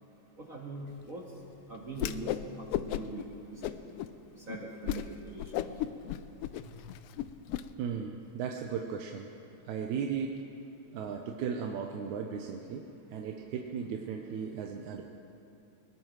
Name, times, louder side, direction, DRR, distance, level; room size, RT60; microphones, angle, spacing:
voice 1, 0.4-1.2 1.7-4.0 4.3-6.0 6.7-6.8, right 2 dB, 35° right, -2 dB, 1.5 m, -42 dB
Whoosh swoosh swish, 1.9-2.4 2.7-3.2 3.6-4.1 4.5-4.6 4.9-5.1 5.4-7.6, left 13 dB, 90° left, 1.3 m, -34 dB
voice 2, 7.8-9.3 9.7-10.3 10.9-12.8 13.1-15.0, right 6 dB, 90° right, 2 dB, 2.2 m, -36 dB
23.0 x 19.5 x 3.2 m, 2.8 s
omnidirectional pair, 3.3 m